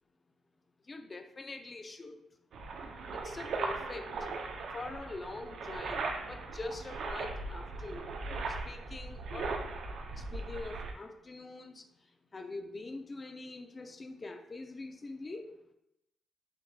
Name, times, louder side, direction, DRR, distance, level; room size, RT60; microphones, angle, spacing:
voice 1, 0.9-2.2 3.2-4.2 4.7-8.2 8.6-9.6 10.3-11.9 12.3-15.6, left 2 dB, 30° left, 6 dB, 0.5 m, -44 dB
sound 1, 2.5-10.9, right 3 dB, 70° right, 0.6 m, -38 dB
7.8 x 2.6 x 2.3 m, 0.86 s
cardioid pair, 100°, 0 cm